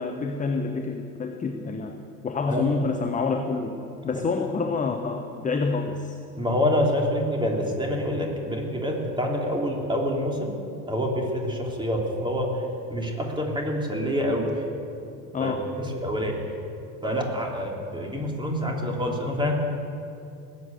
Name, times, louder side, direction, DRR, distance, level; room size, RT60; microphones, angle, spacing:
voice 1, 0.0-2.0 2.2-3.8 4.0-6.2 15.3-15.8, left 4 dB, 15° left, 6 dB, 0.9 m, -27 dB
voice 2, 6.3-10.5 10.9-12.6 12.9-14.6 15.4-15.5 16.0-16.4 17.0-19.5, equal, 10° right, 0 dB, 3.4 m, -26 dB
19.0 x 8.4 x 8.0 m, 2.6 s
hypercardioid pair, 80°, 48 cm